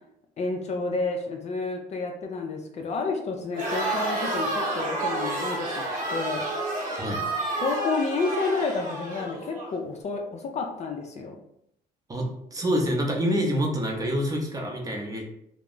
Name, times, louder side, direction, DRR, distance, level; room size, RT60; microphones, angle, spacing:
voice 1, 0.4-6.5 7.6-11.3, left 3 dB, 40° left, 2 dB, 0.4 m, -30 dB
Crowd, 3.5-9.7, right 2 dB, 50° right, 0.8 m, -30 dB
voice 2, 12.1-15.2, equal, 20° right, 0 dB, 0.7 m, -27 dB
2.2 x 2.0 x 3.7 m, 0.74 s
cardioid pair, 110°, 17 cm